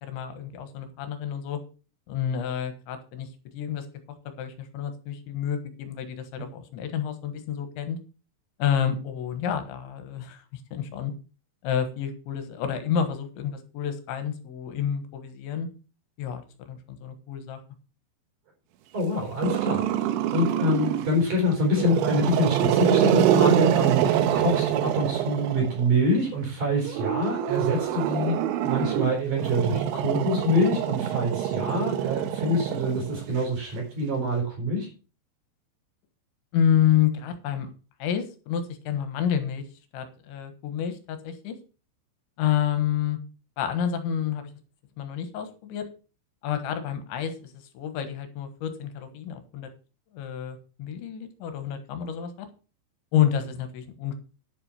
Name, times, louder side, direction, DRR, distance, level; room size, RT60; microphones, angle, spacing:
voice 1, 0.0-1.6 2.1-3.9 4.4-8.0 8.6-11.1 11.6-15.7 16.2-16.4 16.7-17.6 36.5-37.7 38.0-39.6 39.9-41.6 42.4-43.2 43.6-44.5 45.0-45.9 46.4-49.7 50.1-52.5 53.1-54.1, left 9 dB, 80° left, 8 dB, 3.7 m, -29 dB
voice 2, 18.9-20.1 20.3-34.9, left 1 dB, 45° right, 0 dB, 6.0 m, -26 dB
Growling, 19.4-21.2 21.7-25.9 26.9-33.4, right 10 dB, 80° right, 3.2 m, -25 dB
10.5 x 7.8 x 5.8 m, 0.35 s
omnidirectional pair, 5.4 m